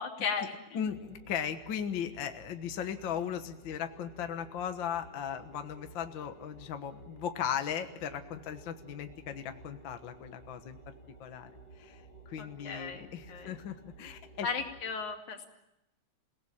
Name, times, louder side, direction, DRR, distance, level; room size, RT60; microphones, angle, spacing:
voice 1, 0.0-0.8 12.4-13.5 14.4-15.5, left 5 dB, 75° left, 3 dB, 4.0 m, -36 dB
voice 2, 0.7-10.8 11.2-11.5 11.8-12.0 12.3-14.5, left 8 dB, 50° left, 7 dB, 1.6 m, -37 dB
sound 1, 0.8-14.9, right 2 dB, 15° left, 3.2 m, -54 dB
28.5 x 18.0 x 8.7 m, 0.85 s
omnidirectional pair, 3.4 m